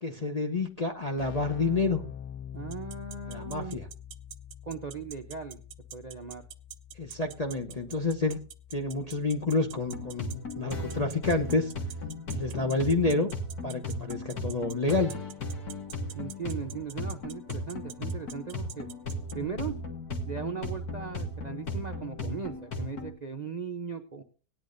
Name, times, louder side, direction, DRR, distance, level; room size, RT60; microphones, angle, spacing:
voice 1, 0.0-2.0 3.3-3.9 7.0-8.4 8.7-11.7 12.3-13.3 13.6-15.1, left 3 dB, 35° left, 2 dB, 0.7 m, -29 dB
Keyboard (musical), 0.9-11.5, left 9 dB, 90° left, 1.6 m, -46 dB
voice 2, 2.5-3.8 4.6-5.6 5.9-6.4 16.1-18.9 19.3-19.8 20.2-24.2, right 5 dB, 40° right, 5 dB, 0.6 m, -38 dB
sound 1, 2.7-19.3, right 10 dB, 65° right, 1.2 m, -44 dB
sound 2, 9.8-23.1, left 1 dB, 65° left, 2.1 m, -36 dB
18.0 x 10.5 x 2.6 m, 0.37 s
omnidirectional pair, 1.8 m